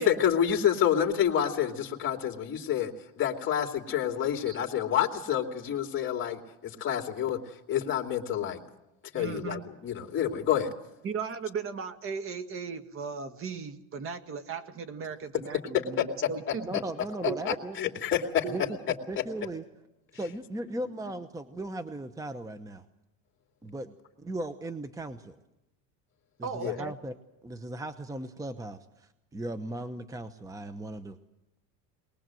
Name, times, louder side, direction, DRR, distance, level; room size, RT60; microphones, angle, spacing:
voice 1, 0.0-7.4 7.7-8.6 9.1-10.7 15.6-16.1 17.2-18.4 26.6-26.7, left 9 dB, 30° left, 3 dB, 2.8 m, -28 dB
voice 2, 9.1-9.6 11.0-16.7 17.3-17.4 18.4-18.8 26.4-26.9, right 5 dB, 35° right, 10 dB, 1.8 m, -37 dB
voice 3, 16.6-17.8 18.5-18.6 19.1-19.6 20.1-22.9 23.6-25.3 26.4-27.1 27.4-31.2, right 1 dB, 10° right, 11 dB, 0.9 m, -37 dB
22.5 x 20.0 x 7.7 m, 0.91 s
supercardioid pair, 120°, 37 cm